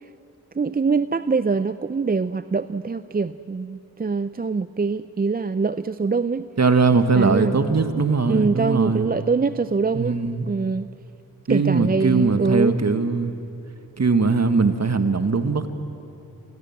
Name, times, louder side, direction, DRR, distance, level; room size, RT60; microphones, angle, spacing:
voice 1, 0.6-6.4 7.1-7.8 8.3-10.2 10.5-10.9 11.5-12.8, right 4 dB, 25° right, 13 dB, 0.6 m, -23 dB
voice 2, 6.6-9.1 9.9-10.5 11.5-13.3 14.0-15.7, right 4 dB, 40° right, 9 dB, 1.7 m, -20 dB
27.5 x 18.5 x 7.4 m, 2.8 s
supercardioid pair, 40°, 39 cm